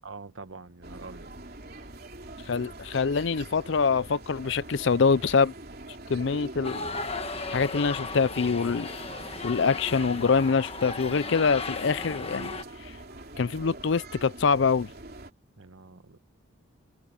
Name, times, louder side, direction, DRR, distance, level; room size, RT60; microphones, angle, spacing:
voice 1, 0.0-1.3 15.6-16.2, right 4 dB, 75° right, 1.3 m, -45 dB
sound 1, 0.8-15.3, right 2 dB, 45° right, 3.3 m, -43 dB
voice 2, 2.5-5.5 6.1-6.8 7.5-8.9 9.4-12.5 12.8-13.0 13.4-14.9, left 5 dB, 65° left, 0.5 m, -25 dB
sound 2, 6.6-12.6, left 3 dB, 30° left, 1.5 m, -36 dB
head